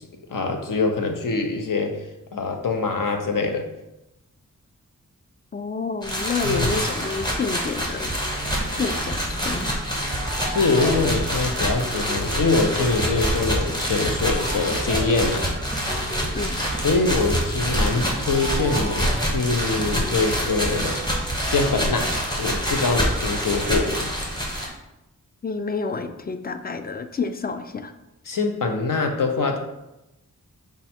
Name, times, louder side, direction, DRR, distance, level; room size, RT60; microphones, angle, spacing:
voice 1, 0.3-2.0 2.3-3.7 6.4-6.9 10.5-15.5 16.8-21.0 21.4-22.1 22.4-24.1 28.3-29.6, left 3 dB, 75° left, 4 dB, 0.7 m, -24 dB
voice 2, 5.5-8.2 8.8-9.7 11.0-11.1 16.3-16.6 25.4-27.9, left 4 dB, 30° left, 8 dB, 0.4 m, -29 dB
sound 1, 6.0-24.7, equal, 15° left, 1.1 m, -26 dB
sound 2, 8.0-22.3, right 2 dB, 15° right, 0.7 m, -34 dB
5.2 x 2.4 x 4.3 m, 0.92 s
wide cardioid pair, 70°, 33 cm